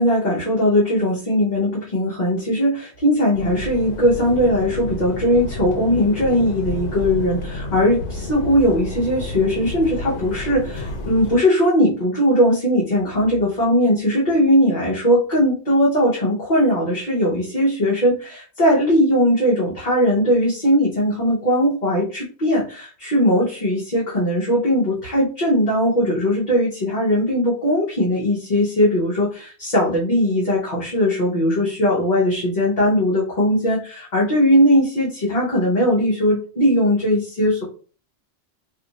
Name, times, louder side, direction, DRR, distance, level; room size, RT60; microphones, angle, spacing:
voice 1, 0.0-37.6, equal, 45° left, -6 dB, 1.0 m, -19 dB
sound 1, 3.3-11.4, left 2 dB, 80° left, 1.0 m, -30 dB
2.6 x 2.5 x 4.0 m, 0.39 s
omnidirectional pair, 1.1 m